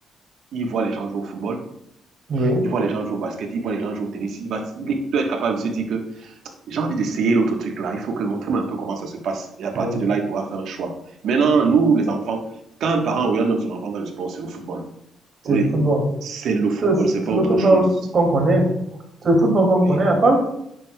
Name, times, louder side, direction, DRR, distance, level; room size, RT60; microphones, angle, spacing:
voice 1, 0.5-1.6 2.4-6.3 6.7-10.9 11.2-12.5 12.8-14.9 15.4-15.7 16.2-17.8 19.8-20.0, right 4 dB, 70° right, 3 dB, 1.1 m, -24 dB
voice 2, 2.3-2.6 9.7-10.0 15.5-16.0 16.8-17.0 17.3-17.8 18.1-18.7 19.2-20.4, right 2 dB, 45° right, 2 dB, 2.3 m, -18 dB
9.1 x 6.4 x 2.2 m, 0.78 s
cardioid pair, 90°, 0 cm